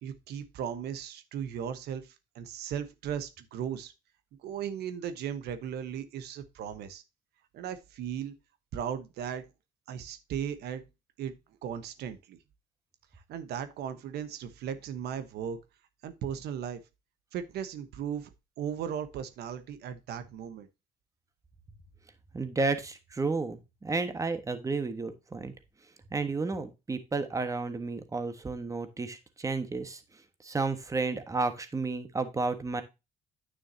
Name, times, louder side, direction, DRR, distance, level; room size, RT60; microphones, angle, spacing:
voice 1, 0.0-3.9 4.4-7.0 7.5-8.3 8.7-9.4 9.9-10.8 11.2-11.3 11.6-12.4 13.3-15.6 16.0-16.8 17.3-18.3 18.6-20.7, right 8 dB, 75° right, 1.1 m, -37 dB
voice 2, 22.3-25.5 26.1-30.0 30.4-32.8, right 3 dB, 20° right, 1.3 m, -32 dB
9.6 x 6.3 x 2.7 m
cardioid pair, 110°, 17 cm